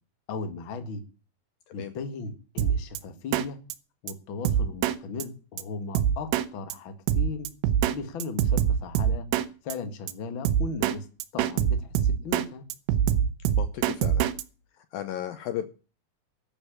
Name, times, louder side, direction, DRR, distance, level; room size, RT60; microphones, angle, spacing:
voice 1, 0.3-1.0 1.7-3.6 4.0-7.5 7.9-9.3 9.6-11.1 11.3-12.6, left 4 dB, 45° left, 9 dB, 1.7 m, -37 dB
Drum kit, 2.6-3.0 3.3-3.5 3.7-3.8 4.1-4.2 4.5-5.0 5.2-5.3 5.6-5.7 6.0-6.5 6.7-6.8 7.1-8.0 8.2-9.5 9.7-9.8 10.1-10.2 10.5-11.0 11.2-12.5 12.7-14.4, right 9 dB, 80° right, 3.1 m, -24 dB
voice 2, 13.6-14.3 14.9-15.7, left 11 dB, 75° left, 10 dB, 2.3 m, -34 dB
12.0 x 6.7 x 8.9 m, 0.35 s
omnidirectional pair, 4.8 m